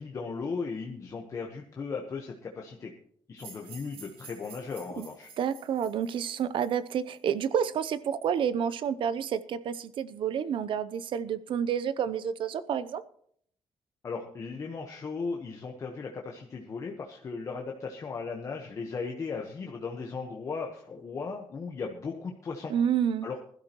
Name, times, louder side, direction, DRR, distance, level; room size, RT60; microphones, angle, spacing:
voice 1, 0.0-2.9 3.3-5.3 14.0-22.7 23.2-23.5, left 4 dB, 35° left, 1 dB, 1.2 m, -37 dB
sound 1, 3.4-7.4, right 5 dB, 80° right, 3.1 m, -51 dB
voice 2, 5.4-13.0 22.7-23.3, right 8 dB, 65° right, 15 dB, 0.7 m, -29 dB
20.5 x 12.5 x 3.0 m, 0.64 s
wide cardioid pair, 170°, 9 cm